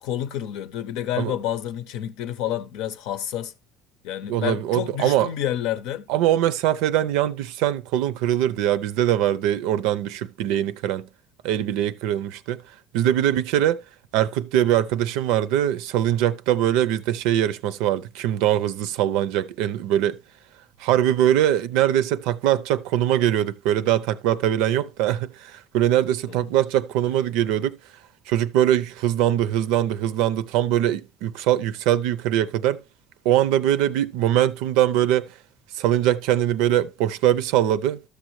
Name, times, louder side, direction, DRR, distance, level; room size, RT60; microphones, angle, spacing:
voice 1, 0.0-3.5 4.0-6.1 26.3-26.5, left 11 dB, 75° left, 0.7 m, -29 dB
voice 2, 4.3-5.3 6.1-11.1 11.4-12.6 12.9-13.8 14.1-20.2 20.8-27.8 28.3-32.8 33.2-35.3 35.7-38.0, right 12 dB, 80° right, 0.5 m, -22 dB
13.0 x 6.5 x 3.1 m
supercardioid pair, 105°, 0 cm